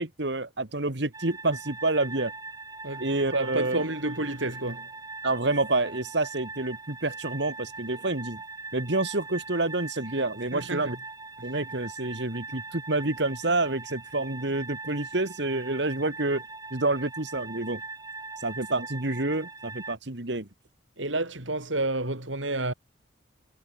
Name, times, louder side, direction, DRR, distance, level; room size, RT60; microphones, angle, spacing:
voice 1, 0.0-2.3 3.0-3.8 5.2-8.4 8.7-11.0 11.4-16.4 16.7-17.8 18.4-20.5, right 2 dB, 65° right, 2.0 m, -28 dB
sound 1, 1.1-19.9, right 3 dB, 20° right, 3.4 m, -41 dB
voice 2, 3.3-4.9 10.5-10.9 21.0-22.7, right 2 dB, 85° right, 7.4 m, -30 dB
head